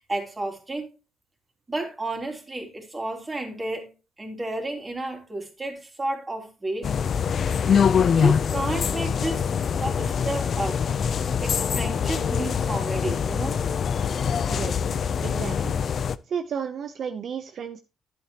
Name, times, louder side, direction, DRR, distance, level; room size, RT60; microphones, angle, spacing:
voice 1, 0.1-0.9 1.7-3.9 4.2-6.9 8.1-9.4 9.8-10.8 11.4-13.6, right 2 dB, 25° right, 3.0 m, -31 dB
sound 1, 6.8-16.2, left 7 dB, 55° left, 0.5 m, -24 dB
voice 2, 14.5-15.7 16.3-17.8, right 7 dB, 60° right, 0.7 m, -33 dB
11.0 x 8.1 x 2.9 m
cardioid pair, 90°, 0 cm